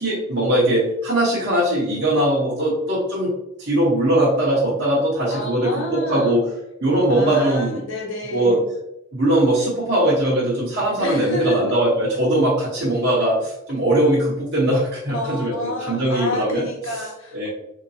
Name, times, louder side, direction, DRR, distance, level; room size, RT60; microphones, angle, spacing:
voice 1, 0.0-6.4 6.8-7.8 8.3-8.6 9.1-16.6 17.3-17.5, right 1 dB, 50° right, -8 dB, 1.0 m, -20 dB
voice 2, 5.3-6.4 7.1-8.7 11.0-11.7 15.1-17.5, equal, 70° left, 0 dB, 0.9 m, -29 dB
3.8 x 2.9 x 2.7 m, 0.84 s
head